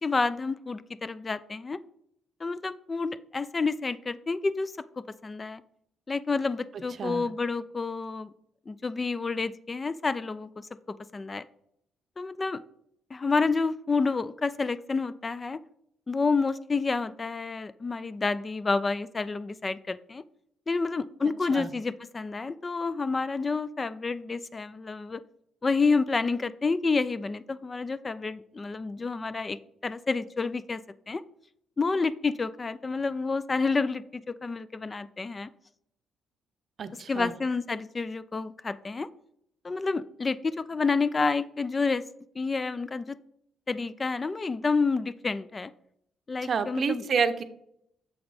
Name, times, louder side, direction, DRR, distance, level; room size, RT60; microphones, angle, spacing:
voice 1, 0.0-1.8 2.4-5.6 6.1-8.3 8.7-11.4 12.2-12.6 13.1-15.6 16.1-20.2 20.7-25.2 25.6-30.8 31.1-31.2 31.8-35.5 37.1-39.1 39.6-42.0 42.4-43.2 43.7-45.7 46.3-47.0, left 4 dB, 30° left, 15 dB, 0.3 m, -29 dB
voice 2, 36.8-37.3 46.4-47.4, right 5 dB, 50° right, 10 dB, 0.6 m, -28 dB
7.0 x 4.0 x 4.9 m, 0.73 s
cardioid pair, 90°, 0 cm